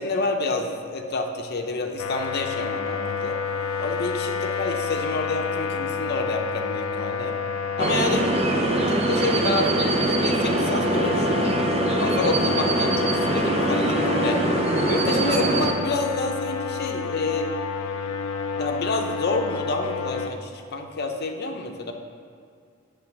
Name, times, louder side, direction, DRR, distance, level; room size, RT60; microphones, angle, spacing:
voice 1, 0.0-3.4 3.8-7.3 7.8-8.3 8.9-11.6 12.0-14.4 14.9-17.5 18.6-21.9, left 3 dB, 50° left, 3 dB, 0.7 m, -28 dB
sound 1, 2.0-20.3, left 5 dB, 85° left, 0.4 m, -29 dB
sound 2, 7.8-15.7, right 2 dB, 30° right, 0.5 m, -23 dB
7.8 x 3.5 x 5.9 m, 2.3 s
head